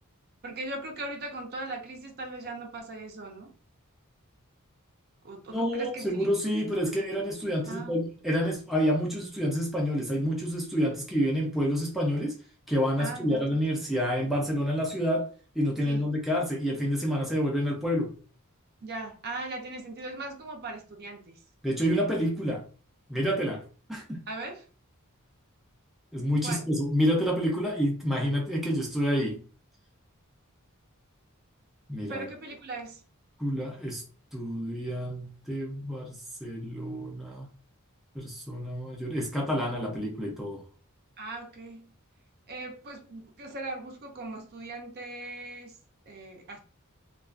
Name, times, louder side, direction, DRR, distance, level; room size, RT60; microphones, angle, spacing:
voice 1, 0.4-3.5 5.2-6.3 7.7-8.0 13.0-13.8 15.9-16.1 18.8-21.4 24.3-24.7 26.4-26.7 32.0-33.0 41.2-41.9 42.5-45.7 46.1-46.6, right 2 dB, 45° right, 0.6 m, -39 dB
voice 2, 5.5-12.4 12.7-18.1 21.6-22.6 23.1-23.6 23.9-24.2 26.1-29.4 31.9-32.3 33.4-34.0 34.3-37.5 38.1-40.6, equal, ahead, 0.5 m, -28 dB
2.3 x 2.3 x 2.4 m
head